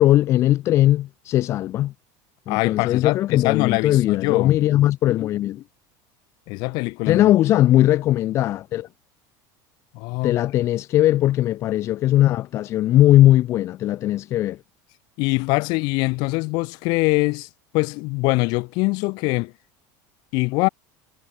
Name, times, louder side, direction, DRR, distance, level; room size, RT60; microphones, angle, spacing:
voice 1, 0.0-1.9 2.5-5.6 7.1-8.9 10.2-14.6, left 14 dB, 30° left, 0.6 m, -19 dB
voice 2, 2.5-4.6 6.5-7.3 9.9-10.4 15.2-17.5 17.7-19.5 20.3-20.7, left 27 dB, 50° left, 2.0 m, -23 dB
cardioid pair, 180°, 9 cm